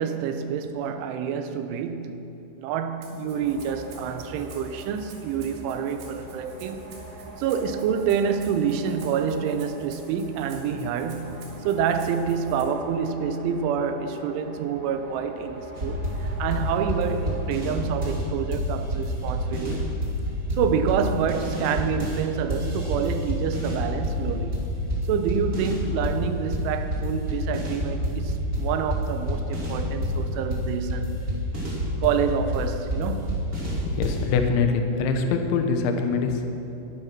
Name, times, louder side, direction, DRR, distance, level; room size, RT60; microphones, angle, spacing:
voice 1, 0.0-2.3 2.6-6.9 7.4-20.0 20.6-24.6 25.1-31.3 32.0-33.4, right 7 dB, 90° right, 3.3 m, -27 dB
Rattle (instrument), 3.0-12.6, right 5 dB, 75° right, 4.8 m, -51 dB
sound 1, 3.3-17.5, equal, 55° right, 6.2 m, -42 dB
sound 2, 15.8-18.3 18.5-22.2 22.5-26.2 26.5-34.3, equal, 25° right, 2.1 m, -28 dB
voice 2, 33.9-36.5, left 5 dB, 75° left, 3.3 m, -24 dB
21.0 x 9.8 x 6.0 m
omnidirectional pair, 5.4 m